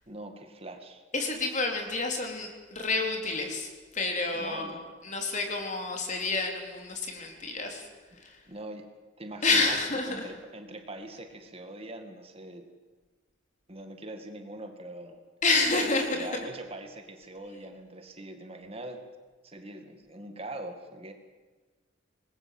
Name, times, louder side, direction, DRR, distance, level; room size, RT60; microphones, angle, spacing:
voice 1, 0.1-1.0 4.3-4.8 8.5-8.9 9.2-9.8 10.1-12.6 13.7-15.2 16.1-19.0 19.4-21.1, right 1 dB, 30° right, 6 dB, 2.1 m, -42 dB
voice 2, 1.1-7.9 8.2-8.4 9.4-10.3 15.4-16.2, left 3 dB, 40° left, 3 dB, 4.0 m, -29 dB
27.0 x 20.5 x 7.9 m, 1.3 s
head